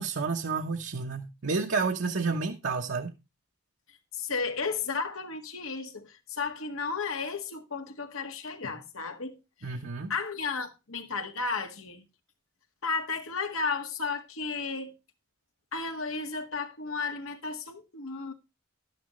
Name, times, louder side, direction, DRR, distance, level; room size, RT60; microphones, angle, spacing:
voice 1, 0.0-3.1 9.6-10.1, right 4 dB, 70° right, 1.0 m, -30 dB
voice 2, 3.9-9.8 10.1-12.0 12.8-14.9 15.7-18.3, left 4 dB, 85° left, 1.8 m, -34 dB
11.5 x 10.0 x 3.1 m
head